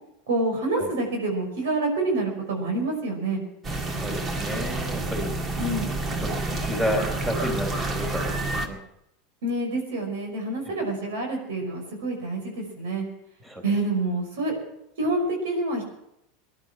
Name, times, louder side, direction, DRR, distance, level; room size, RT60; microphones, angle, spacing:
voice 1, 0.3-3.4 5.6-5.9 9.4-13.1 13.6-14.6 15.0-15.9, right 2 dB, 70° right, 1 dB, 5.5 m, -27 dB
sound 1, 3.6-8.7, right 2 dB, 30° right, 2.2 m, -29 dB
voice 2, 3.9-5.3 6.1-8.8 13.4-13.6, equal, 15° right, 3 dB, 4.3 m, -31 dB
19.0 x 11.0 x 6.3 m, 0.80 s
hypercardioid pair, 85°, 0 cm